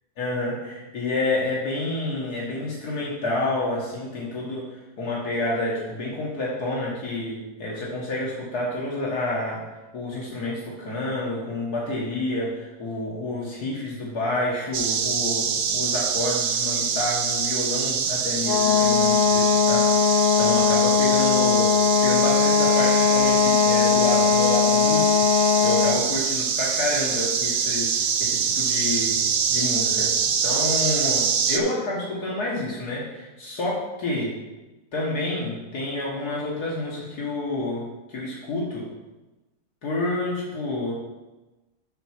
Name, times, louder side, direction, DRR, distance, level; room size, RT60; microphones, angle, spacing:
voice 1, 0.2-9.6 9.9-21.7 22.0-25.1 25.6-29.2 29.5-30.1 30.4-34.3 34.9-38.9 39.8-40.9, left 2 dB, 90° left, -5 dB, 2.2 m, -29 dB
sound 1, 14.7-31.6, right 6 dB, 80° right, 1.3 m, -25 dB
sound 2, 18.4-26.1, left 7 dB, 55° left, 0.4 m, -20 dB
10.0 x 4.7 x 5.9 m, 1.1 s
omnidirectional pair, 1.6 m